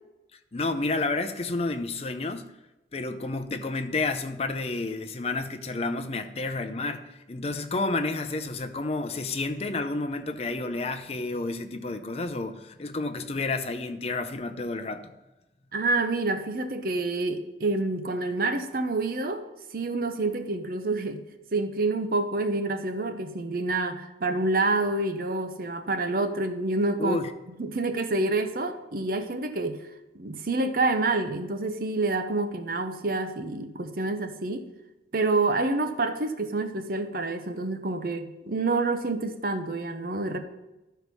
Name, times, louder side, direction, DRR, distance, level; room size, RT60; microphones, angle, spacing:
voice 1, 0.5-2.5 2.9-15.1 27.0-27.3, left 3 dB, 35° left, 9 dB, 0.5 m, -30 dB
voice 2, 15.7-19.4 19.7-21.2 21.5-27.2 27.6-29.8 30.1-34.7 35.1-40.4, right 2 dB, 55° right, 8 dB, 0.8 m, -27 dB
12.5 x 4.6 x 5.4 m, 0.99 s
head